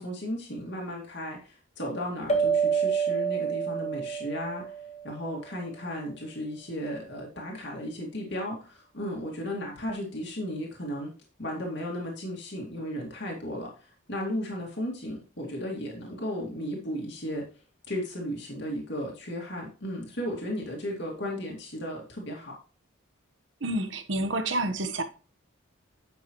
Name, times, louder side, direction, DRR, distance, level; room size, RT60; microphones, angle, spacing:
voice 1, 0.0-4.6 5.0-11.1 11.4-17.5 17.9-22.5, equal, 60° left, 2.2 m, -35 dB
sound 1, 2.3-5.3, right 6 dB, 35° left, 1.1 m, -28 dB
voice 2, 23.6-25.0, right 1 dB, 70° right, 1.1 m, -29 dB
9.8 x 6.4 x 3.0 m
head